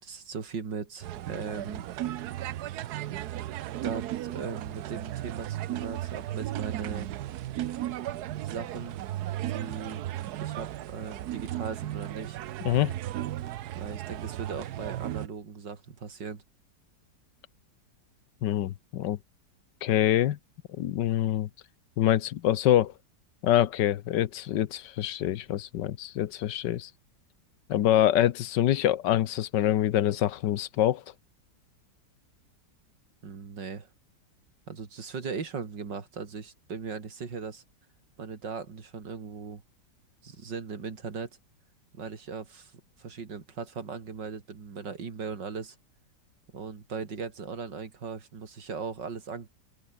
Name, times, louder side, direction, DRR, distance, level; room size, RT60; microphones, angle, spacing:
voice 1, 0.0-1.9 3.8-7.1 8.4-9.0 9.5-10.0 10.4-12.4 13.7-16.4 33.2-33.9 34.7-37.6 38.2-39.6 40.2-41.3 41.9-45.8 46.5-49.5, right 5 dB, 85° right, 3.3 m, -38 dB
sound 1, 1.0-15.3, right 13 dB, 70° right, 1.2 m, -35 dB
voice 2, 12.6-12.9 18.4-19.2 19.8-20.4 20.8-21.5 22.0-22.9 23.4-26.9 27.7-31.0, left 12 dB, 85° left, 1.5 m, -25 dB
open air
omnidirectional pair, 1.9 m